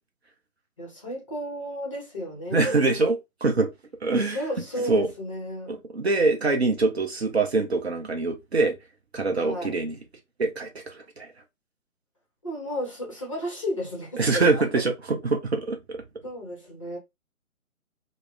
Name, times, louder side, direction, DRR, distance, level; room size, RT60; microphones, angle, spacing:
voice 1, 0.8-3.0 4.1-5.8 9.3-9.7 12.4-14.7 16.2-17.0, equal, 25° left, 0.7 m, -33 dB
voice 2, 2.5-3.7 4.0-4.4 4.8-5.1 5.7-8.8 9.1-10.0 10.4-11.3 14.2-16.0, right 3 dB, 50° right, 0.6 m, -24 dB
2.2 x 2.0 x 3.2 m
figure-of-eight pair, 145°, 42 cm